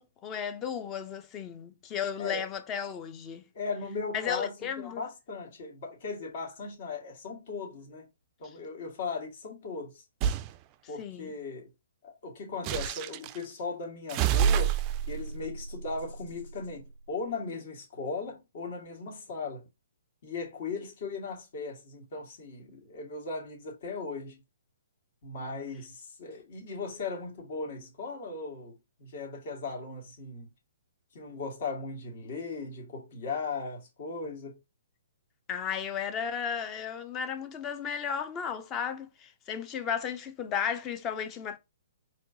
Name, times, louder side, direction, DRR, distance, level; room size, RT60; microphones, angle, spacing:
voice 1, 0.0-3.5 4.1-5.0 11.0-11.3 35.5-41.6, left 7 dB, 25° left, 0.6 m, -34 dB
voice 2, 3.5-8.1 8.4-10.0 10.9-11.7 12.0-14.8 15.1-19.6 20.2-24.4 25.2-28.7 29.0-30.5 31.1-34.6, left 4 dB, 55° left, 1.7 m, -37 dB
sound 1, 10.2-10.5 12.6-13.4 14.1-16.7, right 8 dB, 30° right, 0.3 m, -29 dB
4.3 x 3.1 x 2.7 m
hypercardioid pair, 140°, 0 cm